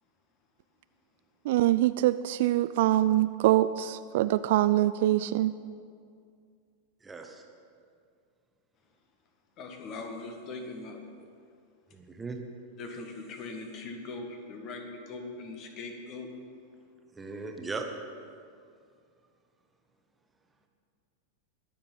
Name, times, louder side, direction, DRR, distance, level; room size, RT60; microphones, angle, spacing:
voice 1, 1.4-5.5, right 14 dB, 50° right, 14 dB, 0.3 m, -24 dB
voice 2, 7.0-7.4 11.9-12.4 17.1-17.9 18.2-18.3, right 4 dB, 10° right, 3 dB, 1.4 m, -38 dB
voice 3, 9.6-11.0 12.8-16.3, left 3 dB, 35° left, 4 dB, 1.9 m, -40 dB
22.0 x 7.4 x 5.8 m, 2.2 s
figure-of-eight pair, 90°, 0 cm